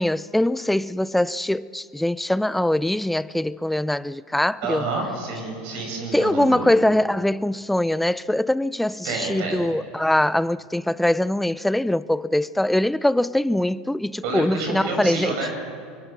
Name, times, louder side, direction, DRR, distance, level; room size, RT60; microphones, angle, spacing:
voice 1, 0.0-4.9 6.1-15.4, left 1 dB, 5° left, 0.5 m, -22 dB
voice 2, 4.6-6.7 9.0-9.6 14.2-15.5, right 3 dB, 65° right, 7.8 m, -28 dB
23.5 x 23.0 x 6.1 m
supercardioid pair, 105°, 3 cm